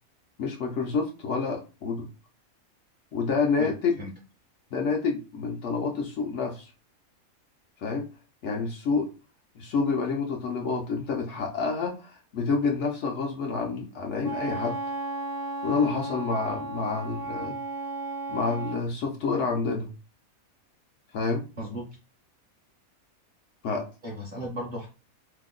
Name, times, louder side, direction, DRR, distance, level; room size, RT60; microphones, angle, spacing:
voice 1, 0.4-2.1 3.1-4.0 4.7-6.7 7.8-8.0 8.4-9.1 9.5-14.8 15.6-17.6 18.3-19.9 21.1-21.4 23.6-23.8, left 4 dB, 65° left, 1 dB, 0.8 m, -28 dB
voice 2, 3.6-4.1 21.6-21.8 24.0-24.9, equal, 45° right, -1 dB, 0.6 m, -36 dB
Wind instrument woodwind instrument, 14.2-18.8, right 3 dB, 35° left, 0.6 m, -34 dB
2.8 x 2.0 x 3.6 m, 0.32 s
omnidirectional pair, 1.5 m